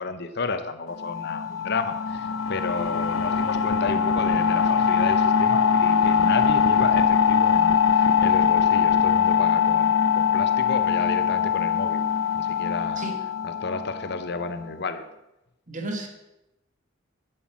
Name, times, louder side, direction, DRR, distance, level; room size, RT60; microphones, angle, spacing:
voice 1, 0.0-12.0 12.4-13.1 13.4-15.0, left 4 dB, 55° left, 10 dB, 0.9 m, -32 dB
sound 1, 1.0-14.4, left 7 dB, 85° left, 0.6 m, -22 dB
voice 2, 15.7-16.1, right 1 dB, 40° right, 3 dB, 1.9 m, -32 dB
11.0 x 8.5 x 6.2 m, 0.93 s
head